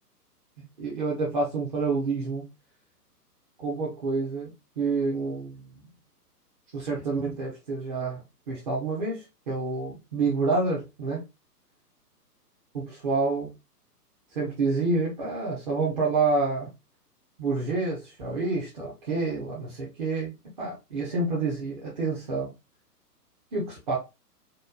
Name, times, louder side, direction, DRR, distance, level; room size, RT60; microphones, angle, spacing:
voice 1, 0.8-2.5 3.6-5.6 6.7-11.2 12.7-13.5 14.3-16.7 17.4-22.5 23.5-24.0, right 3 dB, 30° right, 0.7 m, -28 dB
3.0 x 2.2 x 2.3 m
figure-of-eight pair, 120°, 48 cm